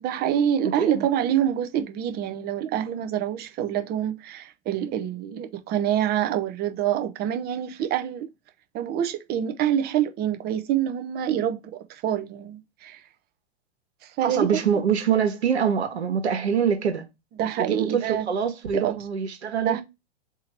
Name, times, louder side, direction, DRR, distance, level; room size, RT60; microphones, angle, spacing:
voice 1, 0.0-8.3 8.7-13.0 14.0-14.5 17.4-18.3 18.7-18.9 19.6-19.8, right 10 dB, 30° right, 0.7 m, -26 dB
voice 2, 0.6-1.1 14.2-17.1 17.6-19.8, right 7 dB, 80° right, 1.4 m, -24 dB
3.8 x 2.8 x 4.3 m
hypercardioid pair, 110°, 32 cm